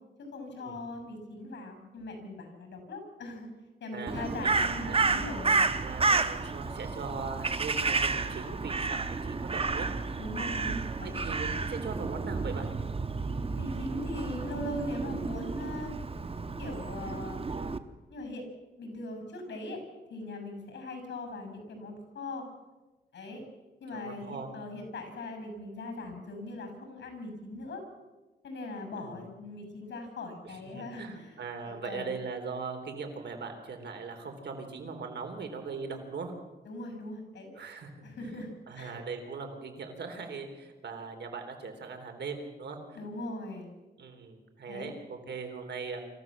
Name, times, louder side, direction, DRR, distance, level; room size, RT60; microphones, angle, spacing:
voice 1, 0.2-3.5 3.8-5.6 10.2-11.2 13.6-15.9 16.6-17.4 18.1-18.5 18.8-19.8 20.1-22.4 23.1-23.4 23.8-27.8 28.4-31.4 31.7-32.2 36.6-37.5 38.0-38.5 38.7-39.0 42.9-43.7 44.7-45.0, left 2 dB, 80° left, 6 dB, 6.7 m, -40 dB
voice 2, 3.9-4.5 4.8-5.0 5.8-9.9 11.0-12.7 23.9-24.5 29.0-29.2 30.4-36.3 37.5-42.8 44.0-46.0, right 4 dB, 75° right, 4 dB, 3.8 m, -40 dB
Crow, 4.1-17.8, right 4 dB, 30° right, 1.2 m, -31 dB
26.0 x 14.5 x 7.5 m, 1.2 s
cardioid pair, 100°, 18 cm